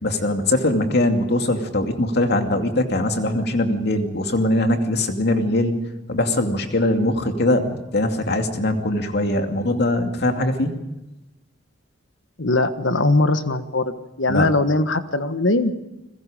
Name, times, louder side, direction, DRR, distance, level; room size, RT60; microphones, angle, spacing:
voice 1, 0.0-5.8 6.1-10.7 14.3-14.5, left 1 dB, 60° left, 5 dB, 2.5 m, -21 dB
voice 2, 12.4-15.7, left 2 dB, 75° left, 10 dB, 1.5 m, -20 dB
29.5 x 21.5 x 5.1 m, 0.99 s
head